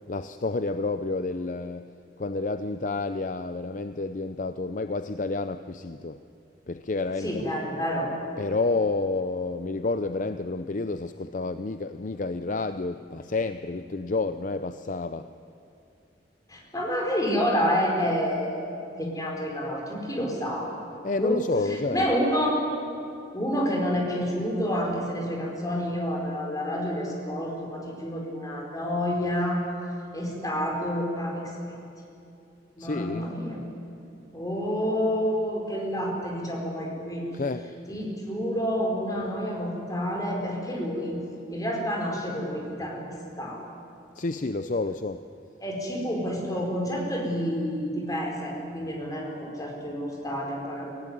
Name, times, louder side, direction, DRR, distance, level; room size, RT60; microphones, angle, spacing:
voice 1, 0.1-1.9 2.2-6.2 6.7-7.5 8.4-15.3 21.0-22.1 32.8-33.3 37.3-37.7 44.2-45.2, left 3 dB, 45° left, 10 dB, 0.6 m, -29 dB
voice 2, 7.2-8.1 16.5-20.7 21.2-21.4 21.7-22.6 23.3-29.7 30.1-31.5 32.8-33.6 34.3-37.2 37.9-41.2 41.5-43.1 43.4-43.6 45.6-50.9, equal, 20° left, -1 dB, 4.7 m, -29 dB
24.5 x 16.0 x 9.8 m, 2.7 s
head